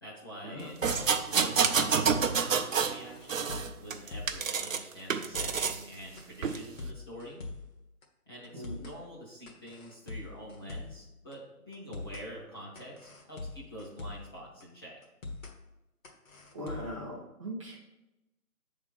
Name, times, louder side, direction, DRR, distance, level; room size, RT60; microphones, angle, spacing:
voice 1, 0.0-7.4 8.3-15.0, equal, 15° left, -7 dB, 0.7 m, -46 dB
sound 1, 0.6-1.1 1.4-1.5 1.8-2.4 2.9-4.4 4.7-4.8 5.1-5.7 6.2-7.7 8.0-8.1 8.4-9.0 9.5-11.0 11.3-11.4 11.7-12.3 12.8-14.3 14.6-14.7 15.0-15.6 16.0-17.0, left 3 dB, 60° left, 1.4 m, -43 dB
sound 2, 0.8-3.0 3.3-4.8 5.1-5.8 6.4-6.6, right 6 dB, 60° right, 0.6 m, -28 dB
voice 2, 16.5-17.8, equal, 20° right, -4 dB, 0.7 m, -40 dB
7.3 x 3.6 x 5.6 m, 0.94 s
figure-of-eight pair, 150°, 45 cm